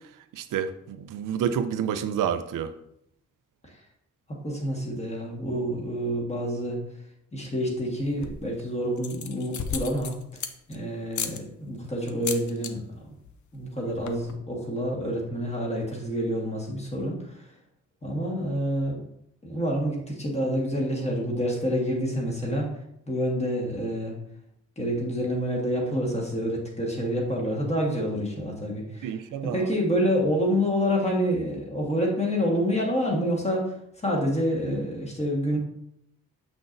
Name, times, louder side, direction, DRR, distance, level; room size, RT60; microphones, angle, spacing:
voice 1, 0.3-2.7 29.0-29.7, right 8 dB, 85° right, 10 dB, 0.5 m, -29 dB
voice 2, 4.3-6.8 7.3-10.1 10.7-13.1 13.5-17.2 18.0-19.0 19.4-22.7 23.1-24.1 24.8-29.1 29.4-33.7 34.0-35.6, equal, 20° left, -2 dB, 1.5 m, -27 dB
sound 1, 8.0-8.5 9.0-10.8 11.1-11.4 12.1-12.7 13.0-13.3 13.6-13.7 13.9-14.3, left 7 dB, 65° left, 0.6 m, -34 dB
7.1 x 5.9 x 2.6 m, 0.75 s
wide cardioid pair, 160°, 31 cm